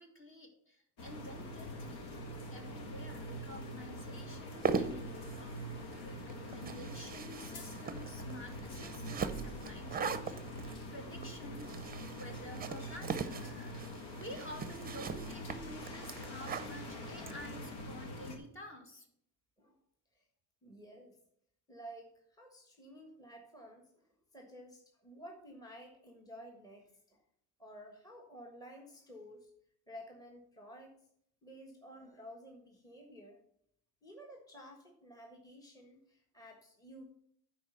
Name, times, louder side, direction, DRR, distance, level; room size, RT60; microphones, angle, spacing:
voice 1, 0.0-1.9 2.5-10.4 10.9-19.1, left 1 dB, 35° left, 4 dB, 1.9 m, -50 dB
sound 1, 1.0-18.4, equal, 80° left, 2.0 m, -44 dB
sound 2, 4.4-17.9, right 5 dB, 25° right, 0.7 m, -41 dB
voice 2, 20.6-21.2 21.7-27.2 27.6-29.5 29.9-30.9 31.4-33.4 34.0-37.0, equal, 10° left, 1 dB, 1.4 m, -53 dB
10.0 x 4.3 x 6.7 m, 0.69 s
cardioid pair, 115°, 38 cm